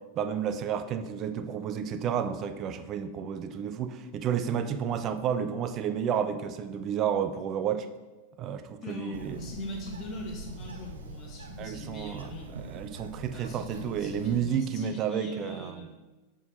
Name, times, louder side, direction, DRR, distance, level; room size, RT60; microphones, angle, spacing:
voice 1, 0.2-7.9 8.4-9.4 11.6-12.3 12.6-15.9, right 8 dB, 35° right, 10 dB, 0.4 m, -31 dB
voice 2, 8.8-12.6 13.3-15.9, left 1 dB, 30° left, 0 dB, 1.4 m, -41 dB
Bird, 9.1-14.4, right 2 dB, 70° right, 0.7 m, -44 dB
7.9 x 3.7 x 4.3 m, 1.2 s
figure-of-eight pair, 90°, 0 cm